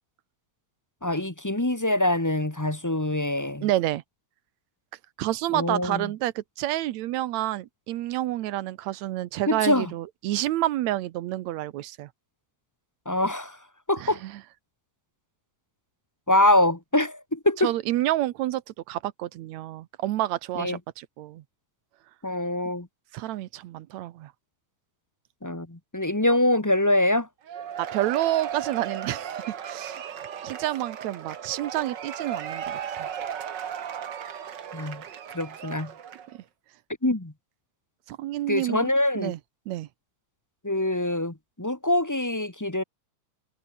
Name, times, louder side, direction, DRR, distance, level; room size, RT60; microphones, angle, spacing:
voice 1, 1.0-3.7 5.5-6.1 9.5-9.9 13.0-13.6 13.9-14.2 16.3-17.7 20.5-20.8 22.2-22.9 25.4-27.3 34.7-35.0 35.3-35.9 37.0-37.3 38.5-39.3 40.6-42.8, left 1 dB, 15° left, 0.5 m, -24 dB
voice 2, 3.6-4.0 5.2-12.1 14.0-14.3 17.6-18.6 18.9-21.4 23.1-24.3 27.8-30.0 30.4-33.1 36.3-36.4 38.1-39.4 39.7-39.9, right 15 dB, 80° right, 2.1 m, -29 dB
Cheering / Applause / Crowd, 27.5-36.4, right 8 dB, 50° right, 1.5 m, -36 dB
omnidirectional pair, 3.3 m